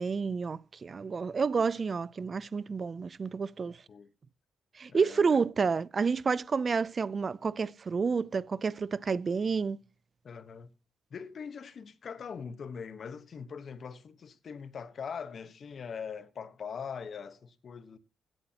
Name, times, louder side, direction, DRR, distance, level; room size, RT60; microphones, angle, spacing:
voice 1, 0.0-3.8 4.8-9.8, right 5 dB, 40° right, 0.5 m, -29 dB
voice 2, 4.9-5.4 10.2-10.7 11.1-18.0, left 6 dB, 50° left, 1.2 m, -42 dB
16.5 x 11.0 x 2.9 m
cardioid pair, 85°, 0 cm